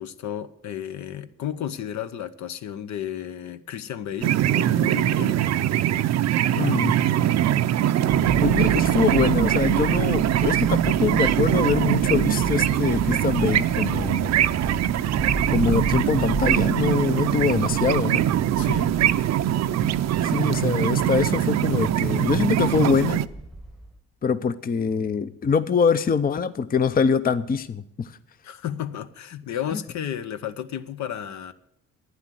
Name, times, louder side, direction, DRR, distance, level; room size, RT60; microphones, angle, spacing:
voice 1, 0.0-5.4 18.6-19.0 28.4-31.5, left 10 dB, 70° left, 12 dB, 0.9 m, -33 dB
sound 1, 4.2-23.3, right 12 dB, 60° right, 0.5 m, -22 dB
voice 2, 6.6-6.9 8.4-14.3 15.5-18.2 20.2-23.2 24.2-28.1 29.7-29.8, left 6 dB, 30° left, 13 dB, 0.6 m, -24 dB
sound 2, 8.1-24.0, right 1 dB, ahead, 1.0 m, -34 dB
11.5 x 9.4 x 7.5 m, 0.78 s
cardioid pair, 90°, 30 cm